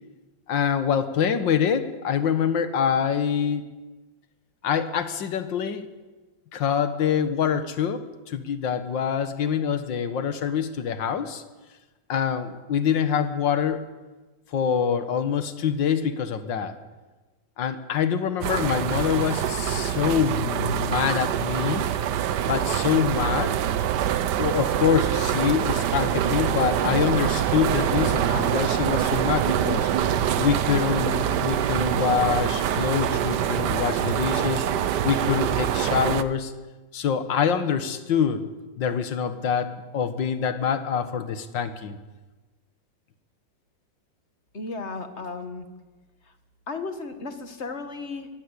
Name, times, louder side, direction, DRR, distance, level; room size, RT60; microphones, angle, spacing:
voice 1, 0.5-3.6 4.6-5.9 6.5-11.4 12.1-13.8 14.5-16.8 17.6-21.9 22.5-23.6 24.4-29.9 30.4-34.7 35.0-36.5 36.9-38.5 38.8-42.0, left 7 dB, 75° left, 10 dB, 2.0 m, -25 dB
sound 1, 18.4-36.2, right 10 dB, 65° right, 1.4 m, -25 dB
voice 2, 44.5-45.7 46.7-48.3, left 3 dB, 35° left, 8 dB, 1.9 m, -34 dB
22.5 x 17.0 x 8.2 m, 1.2 s
omnidirectional pair, 2.0 m